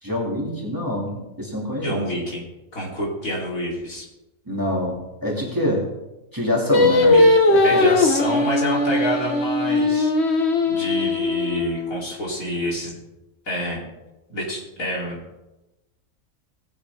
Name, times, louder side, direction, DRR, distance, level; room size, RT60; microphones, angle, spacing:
voice 1, 0.0-2.0 4.5-5.8 6.3-7.2 7.5-7.8, left 1 dB, 15° right, -3 dB, 2.4 m, -25 dB
voice 2, 1.8-2.4 2.7-4.0 7.0-7.2 7.6-12.9 13.5-13.9 14.3-15.4, equal, 75° left, -4 dB, 3.7 m, -28 dB
Singing, 6.7-12.0, left 2 dB, 50° left, 1.5 m, -19 dB
18.5 x 8.5 x 3.5 m, 1.0 s
omnidirectional pair, 1.5 m